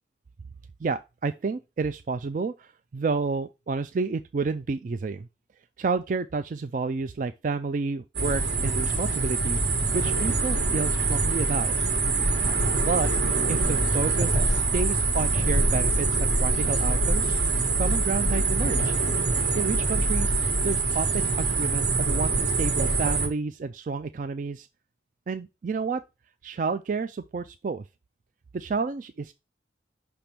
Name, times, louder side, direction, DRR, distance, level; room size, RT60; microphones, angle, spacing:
voice 1, 0.8-5.3 5.8-11.7 12.7-17.4 17.8-18.9 19.6-20.3 20.6-24.7 25.3-26.0 26.4-27.8 28.5-29.3, right 4 dB, 45° right, 0.3 m, -30 dB
sound 1, 8.1-23.3, right 3 dB, 75° right, 1.7 m, -24 dB
5.9 x 3.4 x 5.7 m
head